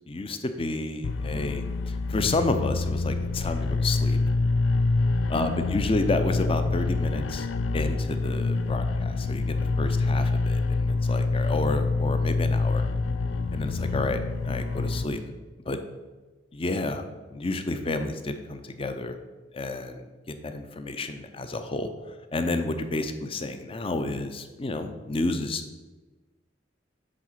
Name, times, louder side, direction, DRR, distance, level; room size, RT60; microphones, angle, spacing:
voice 1, 0.1-4.2 5.3-7.5 7.7-12.9 13.5-14.2 14.4-15.2 15.7-15.8 16.5-17.1 17.3-19.2 19.5-21.9 22.3-25.6, left 2 dB, 30° left, 8 dB, 0.5 m, -30 dB
sound 1, 1.0-15.0, left 3 dB, 85° left, 0.4 m, -26 dB
7.5 x 3.7 x 5.8 m, 1.2 s
head